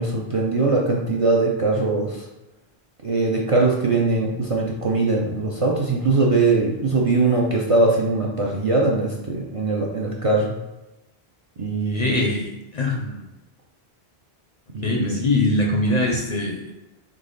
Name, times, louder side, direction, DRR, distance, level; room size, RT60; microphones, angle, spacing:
voice 1, 0.0-2.2 3.0-10.5 11.6-12.2 14.7-15.2, right 3 dB, 45° right, -2 dB, 0.5 m, -21 dB
voice 2, 11.9-13.2 14.8-16.7, left 2 dB, 50° left, 0 dB, 0.5 m, -23 dB
3.9 x 3.1 x 3.9 m, 1.0 s
omnidirectional pair, 1.1 m